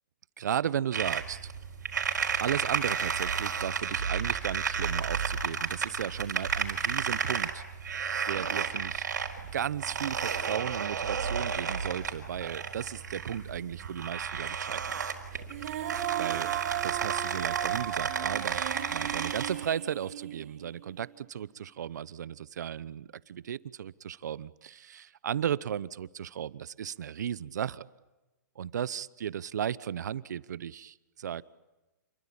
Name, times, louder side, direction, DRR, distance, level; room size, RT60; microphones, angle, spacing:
voice 1, 0.4-1.5 2.4-7.6 8.3-9.0 9.5-15.0 16.2-16.5 16.8-18.6 18.9-27.8 28.6-31.4, right 9 dB, 70° right, 19 dB, 0.9 m, -35 dB
sound 1, 0.9-19.5, right 6 dB, 90° right, 4.2 m, -32 dB
Female singing, 15.5-20.7, right 12 dB, 50° right, 3.5 m, -35 dB
28.0 x 22.0 x 8.7 m, 1.1 s
hypercardioid pair, 150°, 10 cm